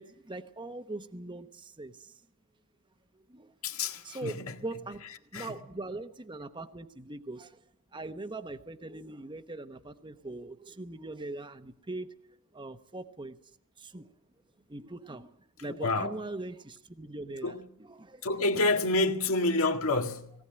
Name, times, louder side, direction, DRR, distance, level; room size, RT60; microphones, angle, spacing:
voice 1, 0.0-2.1 3.1-3.5 4.0-5.1 5.3-7.6 7.9-12.2 12.5-13.4 13.8-14.1 14.7-17.5 17.8-18.3, right 2 dB, 20° right, 1.0 m, -41 dB
voice 2, 3.6-4.6 5.3-5.6 15.7-16.2 17.4-17.7 18.2-20.3, left 2 dB, 70° left, 1.9 m, -28 dB
18.5 x 18.5 x 8.9 m
head